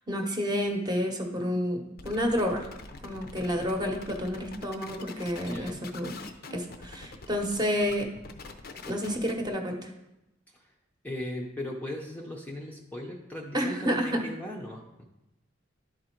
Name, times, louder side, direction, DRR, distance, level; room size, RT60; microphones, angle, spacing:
voice 1, 0.1-2.7 3.0-6.1 6.5-8.1 8.9-9.9 13.5-14.2, equal, 20° right, 3 dB, 0.9 m, -30 dB
sound 1, 2.0-9.5, left 3 dB, 55° left, 0.7 m, -44 dB
voice 2, 5.5-5.8 10.5-10.7 11.0-15.1, left 1 dB, 10° left, -1 dB, 0.7 m, -38 dB
11.0 x 3.8 x 4.5 m, 0.94 s
head